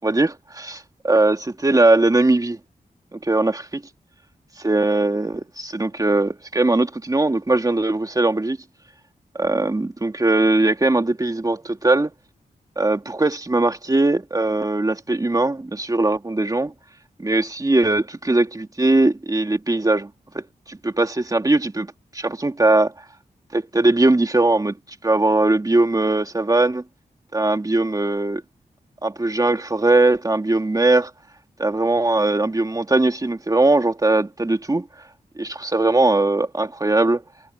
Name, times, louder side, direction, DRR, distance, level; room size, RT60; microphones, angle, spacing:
voice 1, 0.0-2.6 3.1-3.8 4.6-8.6 9.3-12.1 12.8-16.7 17.2-22.9 23.5-24.8 25.0-26.8 27.3-28.4 29.0-31.1 31.6-34.9 35.4-37.2, right 2 dB, 25° right, 2.3 m, -20 dB
wide cardioid pair, 85°, 16 cm